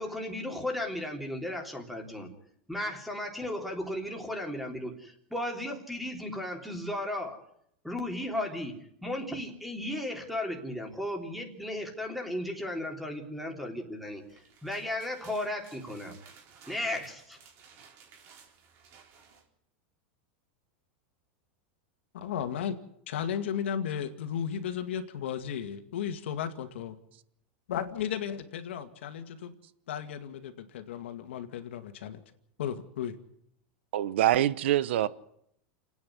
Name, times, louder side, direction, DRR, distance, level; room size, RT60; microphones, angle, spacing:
voice 1, 0.0-2.3 2.7-7.4 7.8-8.7 9.0-16.1 16.7-17.4, left 1 dB, ahead, 3.5 m, -35 dB
sound 1, 14.1-19.5, right 6 dB, 40° right, 4.0 m, -56 dB
voice 2, 22.1-22.8 23.1-26.9 27.7-29.6 29.9-32.2 32.6-33.2, left 8 dB, 85° left, 2.1 m, -34 dB
voice 3, 33.9-35.1, right 12 dB, 80° right, 1.0 m, -25 dB
29.0 x 9.6 x 9.6 m
supercardioid pair, 140°, 6 cm